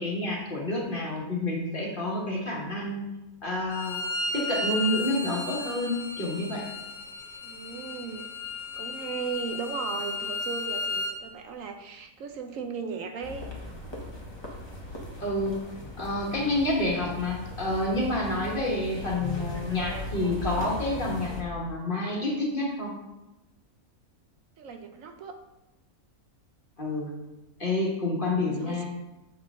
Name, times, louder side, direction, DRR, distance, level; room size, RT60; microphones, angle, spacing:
voice 1, 0.0-3.0 3.4-6.6 15.2-15.6 16.0-22.9 26.8-27.1 27.6-28.9, left 1 dB, 35° left, -3 dB, 1.6 m, -29 dB
Bowed string instrument, 3.7-11.2, left 3 dB, 80° left, 1.3 m, -34 dB
voice 2, 7.4-8.3 8.8-13.8 24.6-25.4 28.4-28.8, right 6 dB, 70° right, 5 dB, 0.9 m, -37 dB
sound 1, 13.2-21.4, left 2 dB, 20° left, 1.0 m, -38 dB
7.2 x 5.8 x 3.7 m, 1.0 s
omnidirectional pair, 1.5 m